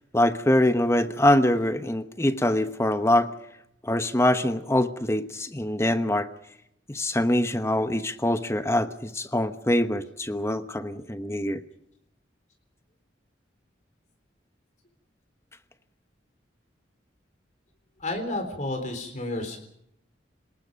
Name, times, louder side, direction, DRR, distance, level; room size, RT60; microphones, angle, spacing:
voice 1, 0.1-3.3 3.8-6.3 6.9-11.6, left 1 dB, 15° left, 9 dB, 1.0 m, -24 dB
voice 2, 18.0-19.6, left 2 dB, 40° left, 5 dB, 3.7 m, -31 dB
29.5 x 19.5 x 5.2 m, 0.75 s
head